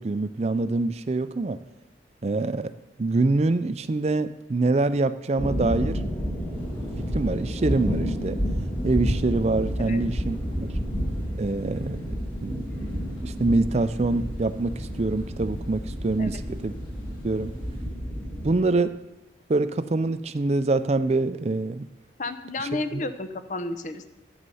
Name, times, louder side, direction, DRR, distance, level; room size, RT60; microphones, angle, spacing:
voice 1, 0.0-1.6 2.2-2.7 3.0-6.0 7.0-8.4 8.8-10.7 11.4-12.2 12.4-12.6 13.1-16.7 17.2-17.5 18.4-19.0 19.5-21.9 22.6-23.0, right 3 dB, 35° right, 13 dB, 0.4 m, -25 dB
sound 1, 5.4-18.5, equal, 10° left, 1.8 m, -30 dB
Thunder, 6.5-17.8, equal, 25° left, 4.4 m, -46 dB
voice 2, 22.2-24.1, left 2 dB, 40° left, 10 dB, 0.7 m, -32 dB
11.5 x 8.0 x 5.5 m, 1.0 s
head